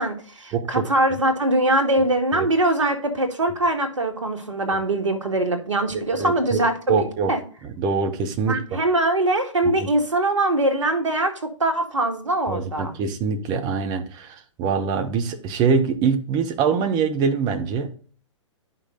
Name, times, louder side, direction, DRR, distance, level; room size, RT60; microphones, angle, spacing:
voice 1, 0.0-7.4 8.5-12.9, right 1 dB, 70° right, 6 dB, 2.1 m, -22 dB
voice 2, 0.5-0.8 2.3-2.5 6.1-6.6 6.9-7.3 7.6-8.8 9.8-9.9 12.5-18.0, right 5 dB, 25° right, 6 dB, 1.3 m, -24 dB
9.9 x 5.9 x 3.9 m, 0.40 s
figure-of-eight pair, 115°, 16 cm